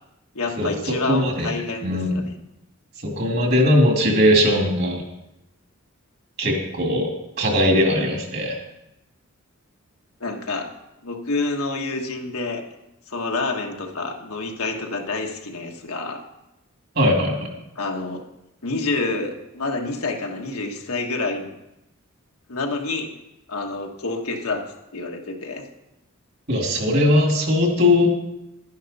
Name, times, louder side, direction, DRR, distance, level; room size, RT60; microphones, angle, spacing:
voice 1, 0.3-2.3 10.2-10.7 11.0-12.6 13.1-16.2 17.7-18.2 18.6-21.5 22.5-23.1 23.5-24.7 24.9-25.7, left 3 dB, 85° left, 2 dB, 1.4 m, -28 dB
voice 2, 1.1-1.5 1.8-2.2 3.0-5.0 6.4-7.1 7.4-8.6 17.0-17.5 26.5-28.1, left 1 dB, 50° right, 1 dB, 2.4 m, -19 dB
11.5 x 10.5 x 4.1 m, 0.90 s
head